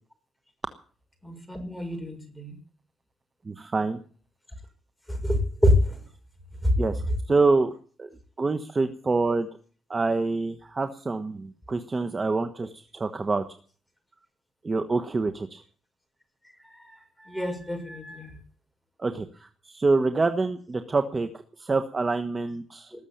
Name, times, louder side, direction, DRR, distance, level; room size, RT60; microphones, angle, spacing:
voice 1, 1.2-2.5 5.2-5.4 5.6-5.7 17.3-18.3, equal, 5° left, 4 dB, 6.4 m, -26 dB
voice 2, 3.4-4.0 6.8-7.0 7.3-7.7 8.0-8.1 8.4-9.5 9.9-13.4 14.6-15.6 19.0-21.3 21.6-22.9, right 3 dB, 30° right, 8 dB, 1.2 m, -26 dB
20.0 x 7.3 x 8.8 m, 0.43 s
cardioid pair, 90°, 0 cm